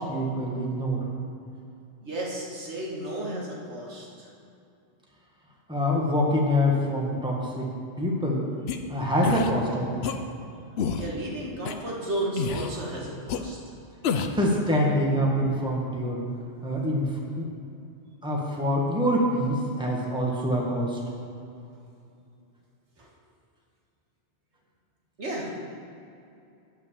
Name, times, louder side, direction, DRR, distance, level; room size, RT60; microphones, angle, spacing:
voice 1, 0.1-1.0 5.7-7.7 8.0-8.4 8.9-10.1 14.4-16.3 16.6-17.1 17.4-17.5 18.2-21.0, equal, 5° right, -2 dB, 1.4 m, -25 dB
voice 2, 2.0-4.3 11.0-13.6 23.0-23.1 25.2-25.5, right 1 dB, 85° right, -3 dB, 2.0 m, -33 dB
sound 1, 8.7-8.8 9.2-9.5 10.0-10.2 10.8-11.1 11.7-11.8 12.4-12.7 13.3-13.4 14.0-14.4, left 6 dB, 70° left, 0.9 m, -28 dB
9.5 x 5.8 x 6.9 m, 2.6 s
omnidirectional pair, 1.1 m